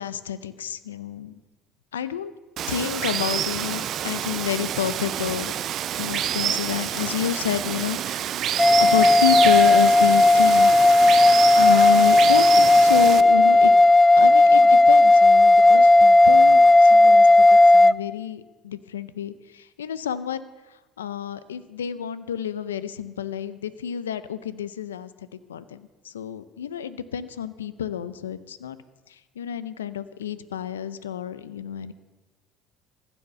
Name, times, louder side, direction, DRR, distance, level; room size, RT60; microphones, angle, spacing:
voice 1, 0.0-1.4 1.9-2.3 2.7-5.5 6.0-8.2 8.8-10.7 11.5-13.7 14.2-20.5 21.0-25.1 25.5-28.8 29.1-31.9, left 9 dB, 90° left, 15 dB, 0.5 m, -29 dB
Water, 2.6-13.2, right 10 dB, 55° right, 0.5 m, -28 dB
sound 1, 8.6-17.9, left 2 dB, 15° left, 0.3 m, -14 dB
15.0 x 7.1 x 6.8 m, 1.2 s
hypercardioid pair, 65°, 0 cm